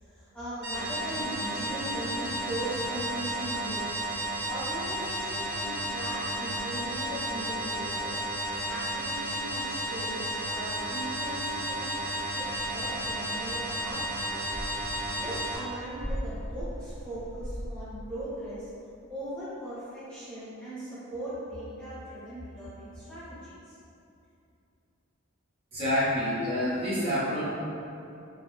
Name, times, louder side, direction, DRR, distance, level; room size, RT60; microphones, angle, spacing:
voice 1, 0.0-4.0 4.5-8.2 8.7-14.5 15.1-18.7 19.1-23.8, right 1 dB, 5° left, -14 dB, 0.9 m, -39 dB
sound 1, 0.6-15.6, right 1 dB, 50° right, 1.2 m, -33 dB
sound 2, 12.4-17.7, equal, 75° left, 1.1 m, -40 dB
voice 2, 25.7-27.4, equal, 25° right, -12 dB, 1.0 m, -27 dB
4.7 x 2.9 x 2.3 m, 2.7 s
head